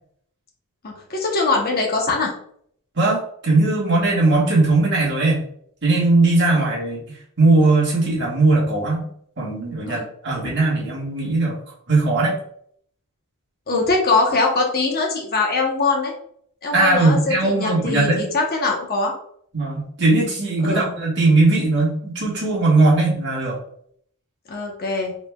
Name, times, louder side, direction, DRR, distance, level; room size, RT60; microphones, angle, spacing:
voice 1, 0.8-2.3 6.5-6.6 9.9-10.0 10.4-10.5 13.7-16.1 16.6-19.1 20.6-21.0 24.5-25.1, left 3 dB, 45° left, 0 dB, 0.9 m, -22 dB
voice 2, 2.9-5.4 5.8-7.0 7.4-9.0 9.4-11.6 11.9-12.4 16.7-18.2 19.5-23.6, right 2 dB, 50° right, -4 dB, 1.5 m, -19 dB
5.0 x 3.3 x 2.3 m, 0.63 s
head